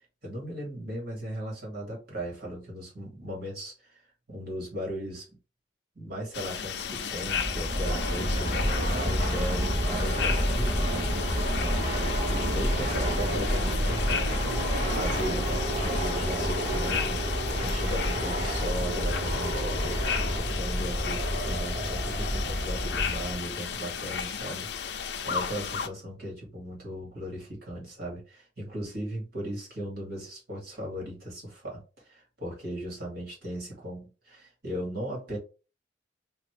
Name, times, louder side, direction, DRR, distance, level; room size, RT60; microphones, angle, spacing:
voice 1, 0.2-5.4 6.0-11.1 11.6-12.0 12.3-25.0 25.2-35.4, equal, 60° right, 2.3 m, -37 dB
sound 1, 6.3-25.9, left 7 dB, 65° left, 0.5 m, -34 dB
Fixed-wing aircraft airplane, 7.1-23.5, equal, 40° right, 1.8 m, -29 dB
4.2 x 2.9 x 3.3 m
head